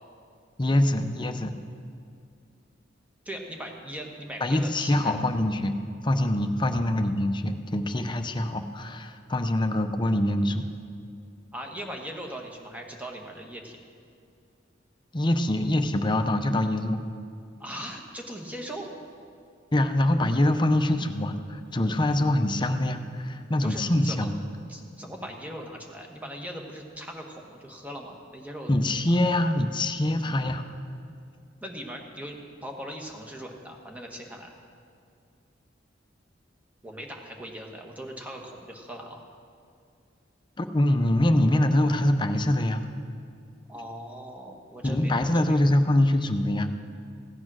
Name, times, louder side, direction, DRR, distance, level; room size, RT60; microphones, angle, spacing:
voice 1, 0.6-1.5 4.4-5.7 6.0-10.6 15.1-17.0 19.7-24.4 28.7-30.6 40.6-42.8 44.8-46.7, left 1 dB, 25° left, 7 dB, 0.6 m, -24 dB
voice 2, 3.2-5.2 11.5-13.8 17.6-19.0 23.6-24.3 24.7-28.7 31.6-34.5 36.8-39.2 43.7-45.6, equal, 10° right, 1 dB, 1.3 m, -39 dB
15.5 x 8.5 x 6.2 m, 2.4 s
head